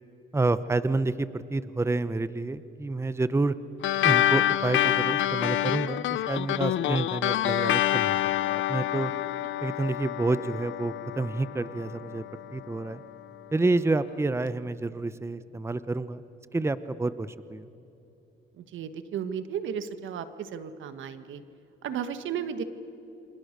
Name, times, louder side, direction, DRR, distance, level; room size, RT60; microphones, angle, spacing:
voice 1, 0.3-3.6 4.0-9.1 9.6-12.2 12.5-13.0 13.5-16.2 16.5-17.7, right 2 dB, 15° right, 14 dB, 0.8 m, -29 dB
sound 1, 3.8-12.7, left 13 dB, 75° left, 0.8 m, -27 dB
voice 2, 18.6-21.4 21.8-22.6, right 8 dB, 75° right, 11 dB, 1.6 m, -34 dB
28.5 x 25.5 x 6.8 m, 2.9 s
cardioid pair, 90°, 20 cm